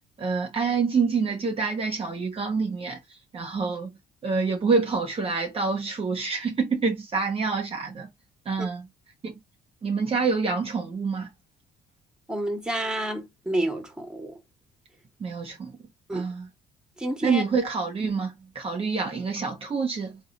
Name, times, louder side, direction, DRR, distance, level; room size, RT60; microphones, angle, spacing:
voice 1, 0.2-3.0 3.3-3.9 4.2-8.1 8.5-8.9 9.2-9.3 9.8-11.3 15.2-15.7 16.1-16.5 17.2-20.2, right 4 dB, 35° right, 1.0 m, -27 dB
voice 2, 12.3-14.4 16.1-16.3 17.0-17.4 18.0-18.1, right 1 dB, 5° right, 1.3 m, -29 dB
3.8 x 2.3 x 4.1 m
cardioid pair, 110°, 17 cm